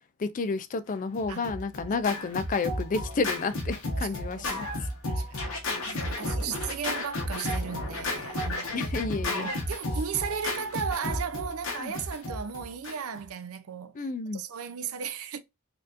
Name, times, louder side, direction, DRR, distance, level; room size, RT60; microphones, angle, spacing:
voice 1, 0.2-4.7 6.1-6.5 8.7-9.5 11.8-11.9 13.9-14.4, left 4 dB, 35° left, 0.4 m, -31 dB
Scratching (performance technique), 1.1-13.2, left 1 dB, 65° left, 1.3 m, -33 dB
voice 2, 4.0-8.8 9.2-13.9 14.3-15.4, right 7 dB, 70° right, 0.5 m, -36 dB
4.3 x 2.7 x 2.5 m
head